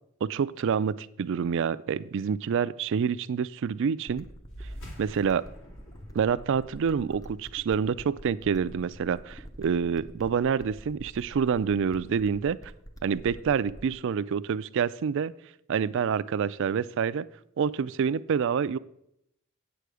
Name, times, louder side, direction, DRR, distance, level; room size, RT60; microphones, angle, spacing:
voice 1, 0.2-4.3 5.0-5.4 6.1-12.6 13.0-15.3 15.7-17.2 17.6-18.8, right 6 dB, 60° right, 17 dB, 0.3 m, -27 dB
sound 1, 4.1-14.1, equal, 15° left, 0.7 m, -47 dB
sound 2, 4.5-9.4, equal, 65° left, 2.4 m, -48 dB
8.5 x 8.0 x 4.8 m, 0.77 s
head